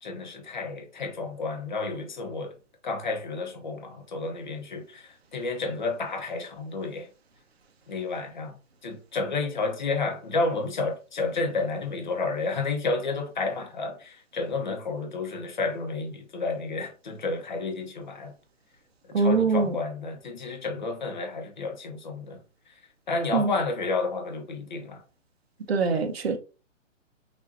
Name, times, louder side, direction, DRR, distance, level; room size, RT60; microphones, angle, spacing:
voice 1, 0.0-2.6 2.8-7.1 7.9-18.3 19.0-22.8 23.1-25.0 25.9-26.0, left 3 dB, 35° left, 0.9 m, -31 dB
voice 2, 19.1-19.7 23.3-23.5 25.7-26.4, right 4 dB, 50° right, 0.9 m, -23 dB
6.3 x 2.6 x 2.7 m
hypercardioid pair, 180°, 38 cm